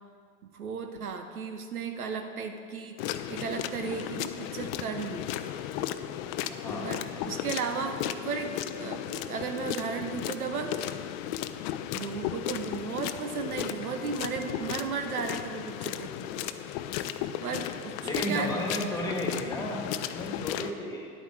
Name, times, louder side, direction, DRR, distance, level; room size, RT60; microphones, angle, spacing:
voice 1, 0.5-5.3 6.8-10.7 11.9-16.6 17.4-18.5, right 5 dB, 75° right, 6 dB, 1.0 m, -35 dB
sound 1, 3.0-20.7, left 11 dB, 45° left, 0.6 m, -35 dB
voice 2, 6.5-6.9 18.0-21.1, left 1 dB, 10° left, -1 dB, 2.2 m, -33 dB
10.5 x 8.4 x 4.7 m, 2.1 s
figure-of-eight pair, 90°, 44 cm